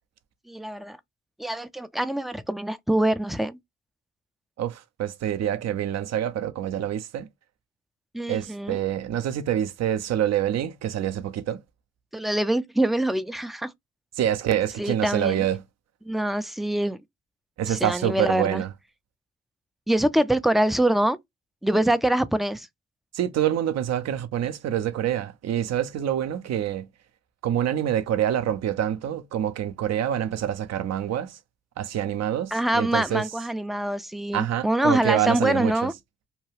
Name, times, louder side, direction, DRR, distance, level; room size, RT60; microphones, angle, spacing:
voice 1, 0.5-1.0 1.4-3.6 8.1-8.8 12.1-13.7 14.8-15.5 16.1-17.0 17.7-18.6 19.9-21.2 21.6-22.7 32.5-35.9, right 1 dB, ahead, 0.4 m, -24 dB
voice 2, 4.6-7.3 8.3-11.6 14.2-15.6 17.6-18.7 23.1-26.9 27.4-31.4 31.8-33.3 34.3-35.9, right 10 dB, 55° right, 0.5 m, -26 dB
2.8 x 2.2 x 3.1 m
hypercardioid pair, 45°, 31 cm